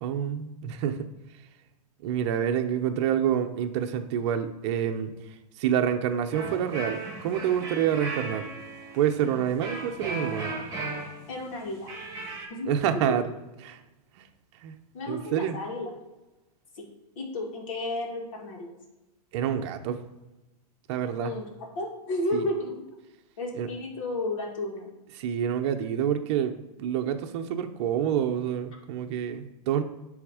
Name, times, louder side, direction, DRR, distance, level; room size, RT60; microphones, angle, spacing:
voice 1, 0.0-1.1 2.0-5.1 5.6-8.5 8.9-10.5 12.7-13.2 13.6-13.8 14.6-14.7 15.1-15.6 19.3-20.0 20.9-21.3 22.3-22.4 23.6-23.7 25.2-26.5 26.8-29.8, right 9 dB, 45° right, 6 dB, 0.8 m, -27 dB
sound 1, 6.3-12.5, right 3 dB, 15° right, 2.1 m, -36 dB
voice 2, 11.3-11.9 12.5-12.8 13.1-13.2 14.9-15.9 16.7-16.9 17.2-18.7 21.2-22.8 23.4-24.9, left 1 dB, 55° left, -1 dB, 2.2 m, -32 dB
9.8 x 3.5 x 4.9 m, 1.0 s
supercardioid pair, 155°, 20 cm